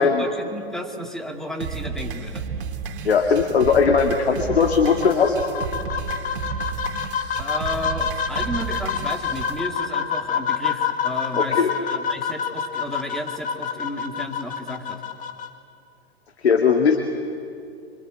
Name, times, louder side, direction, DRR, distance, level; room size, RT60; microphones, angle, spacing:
voice 1, 0.0-2.5 7.4-15.0, left 1 dB, ahead, 3 dB, 2.4 m, -33 dB
sound 1, 1.6-9.6, right 6 dB, 55° right, 2.5 m, -32 dB
voice 2, 3.0-5.4 11.4-11.7 16.4-17.0, left 5 dB, 75° left, 4 dB, 2.3 m, -18 dB
sound 2, 4.5-15.5, left 7 dB, 25° left, 1.8 m, -27 dB
26.0 x 25.0 x 8.9 m, 2.5 s
hypercardioid pair, 110°, 32 cm